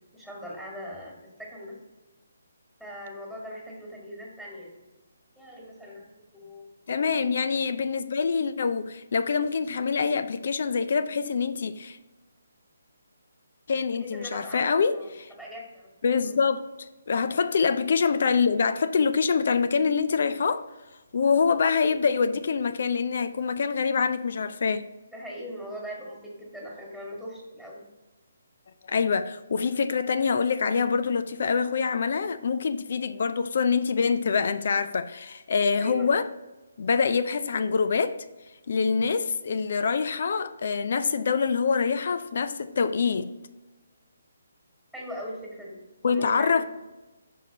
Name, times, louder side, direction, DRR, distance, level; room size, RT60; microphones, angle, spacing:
voice 1, 0.1-1.1 1.4-1.8 2.8-4.7 5.4-6.7 7.5-7.6 13.9-15.1 15.4-15.9 16.2-16.4 25.1-27.8 35.8-36.1 44.9-45.8 46.1-46.6, equal, ahead, 1.9 m, -40 dB
voice 2, 6.9-12.0 13.7-15.3 16.0-20.6 21.1-24.8 28.9-36.2 36.8-38.1 38.7-43.3 46.0-46.6, left 5 dB, 55° left, 0.4 m, -25 dB
5.3 x 5.1 x 3.9 m
figure-of-eight pair, 145°, 0 cm